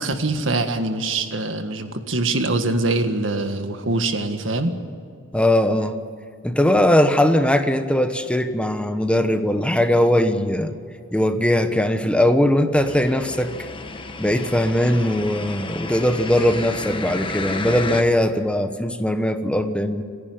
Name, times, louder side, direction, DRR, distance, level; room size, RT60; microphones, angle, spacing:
voice 1, 0.0-4.7, right 2 dB, 90° right, 7 dB, 1.7 m, -23 dB
voice 2, 5.3-5.9 6.4-10.7 11.1-13.5 14.2-20.0, left 1 dB, 5° left, 8 dB, 1.0 m, -20 dB
sound 1, 12.7-18.0, left 3 dB, 25° left, 1.2 m, -32 dB
28.5 x 10.5 x 9.4 m, 2.4 s
head